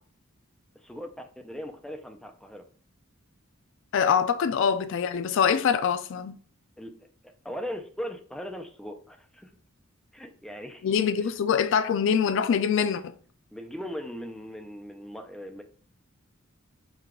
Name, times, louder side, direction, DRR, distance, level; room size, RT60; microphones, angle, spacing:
voice 1, 0.8-2.6 4.4-4.5 6.8-6.9 7.4-9.5 10.1-10.8 13.5-15.6, equal, ahead, 0.5 m, -39 dB
voice 2, 3.9-6.4 10.8-13.1, left 7 dB, 65° left, 0.3 m, -24 dB
4.8 x 2.3 x 3.6 m
head